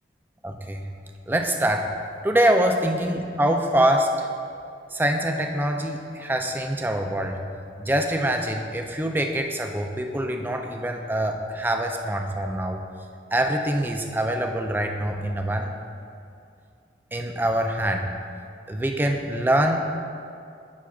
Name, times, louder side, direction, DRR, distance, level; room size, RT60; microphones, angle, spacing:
voice 1, 0.4-0.9 1.3-1.9 2.2-4.3 4.9-7.4 7.8-12.8 13.3-15.7 17.1-18.1 18.7-20.0, right 1 dB, 10° right, 3 dB, 0.4 m, -24 dB
11.5 x 6.2 x 2.4 m, 2.4 s
head